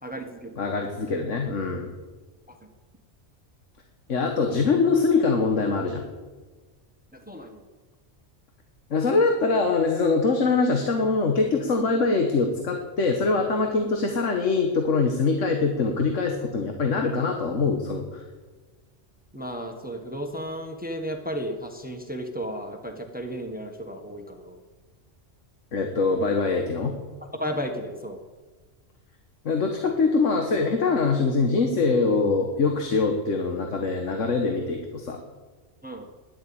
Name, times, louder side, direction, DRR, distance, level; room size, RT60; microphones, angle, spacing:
voice 1, 0.0-0.5 2.5-2.6 7.1-7.6 19.3-24.6 27.3-28.2 29.8-30.0 35.8-36.1, equal, 5° right, 5 dB, 1.4 m, -34 dB
voice 2, 0.6-1.9 4.1-6.0 8.9-18.2 25.7-26.9 29.5-35.2, left 4 dB, 75° left, 3 dB, 1.8 m, -23 dB
13.5 x 11.0 x 8.7 m, 1.3 s
omnidirectional pair, 1.3 m